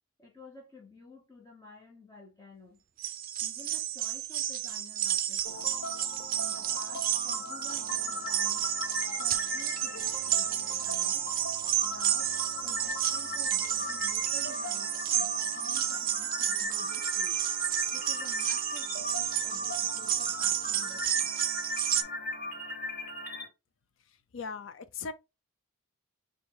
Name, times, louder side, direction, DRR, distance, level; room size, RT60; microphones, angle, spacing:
voice 1, 0.2-2.8 3.4-5.7 6.4-8.7 9.2-11.3 11.8-12.4 12.6-17.4 17.9-21.3, left 3 dB, 15° left, 0.9 m, -52 dB
sound 1, 3.0-22.0, right 11 dB, 45° right, 0.4 m, -31 dB
sound 2, 5.4-23.4, left 2 dB, 45° left, 1.4 m, -39 dB
voice 2, 24.3-25.1, left 5 dB, 65° left, 0.5 m, -38 dB
5.1 x 2.2 x 3.7 m
head